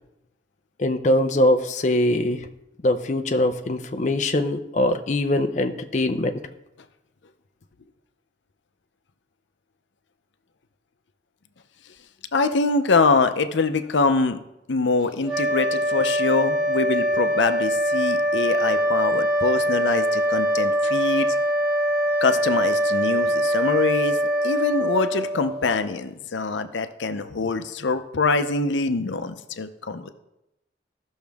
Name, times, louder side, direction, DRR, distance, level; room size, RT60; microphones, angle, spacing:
voice 1, 0.8-2.5 2.8-6.4, left 1 dB, 40° left, 6 dB, 0.6 m, -22 dB
voice 2, 12.3-14.4 14.7-21.4 22.2-24.2 24.4-30.1, left 3 dB, 90° left, 9 dB, 0.6 m, -24 dB
sound 1, 15.2-25.8, equal, 5° right, 3.0 m, -23 dB
16.0 x 6.3 x 3.5 m, 0.90 s
head